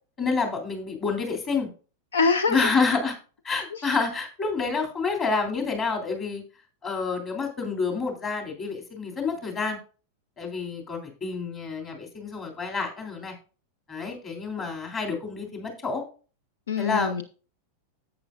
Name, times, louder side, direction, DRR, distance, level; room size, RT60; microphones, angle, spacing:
voice 1, 0.2-1.7 2.5-3.1 3.4-6.4 6.8-9.8 10.4-13.3 13.9-16.0 16.8-17.2, left 4 dB, 25° left, 3.3 m, -28 dB
voice 2, 2.1-2.7 3.7-3.8 16.7-17.2, left 4 dB, 65° left, 0.6 m, -24 dB
11.0 x 8.6 x 2.6 m
figure-of-eight pair, 90°, 0 cm